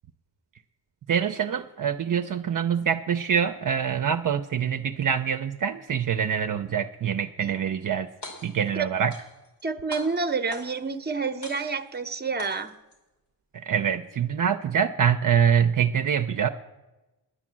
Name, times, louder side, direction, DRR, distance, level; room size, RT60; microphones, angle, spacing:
voice 1, 1.1-8.1 8.4-9.1 13.5-16.5, right 8 dB, 50° right, 6 dB, 0.6 m, -25 dB
sound 1, 8.1-8.7 9.1-9.6 9.9-10.9 11.4-12.0 12.4-13.0, left 2 dB, 75° left, 3.0 m, -42 dB
voice 2, 9.6-12.7, right 4 dB, 25° right, 10 dB, 0.8 m, -28 dB
9.9 x 9.6 x 7.4 m, 1.0 s
wide cardioid pair, 90°, 41 cm